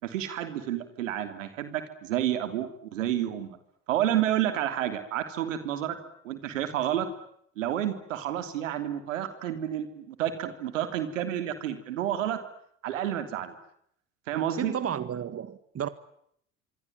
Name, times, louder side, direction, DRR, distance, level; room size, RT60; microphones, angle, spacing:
voice 1, 0.0-3.6 3.9-6.0 6.2-7.1 7.6-12.4 12.8-13.5 14.3-14.7, right 11 dB, 80° right, 3.3 m, -30 dB
voice 2, 14.6-15.9, right 9 dB, 40° right, 1.9 m, -32 dB
26.0 x 24.5 x 9.1 m
figure-of-eight pair, 60°, 38 cm